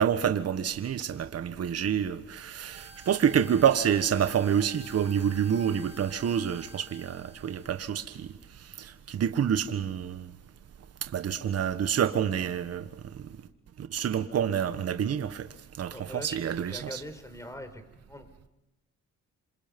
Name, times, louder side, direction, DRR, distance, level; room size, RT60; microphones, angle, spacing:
voice 1, 0.0-8.3 8.8-10.3 11.0-12.9 13.8-15.5 15.8-17.0, right 8 dB, 55° right, 10 dB, 1.5 m, -28 dB
sound 1, 2.7-9.0, equal, 20° right, 6.0 m, -52 dB
voice 2, 15.9-17.8 18.1-18.3, left 1 dB, 10° left, 8 dB, 4.7 m, -42 dB
27.5 x 26.0 x 5.4 m, 0.96 s
cardioid pair, 90°, 30 cm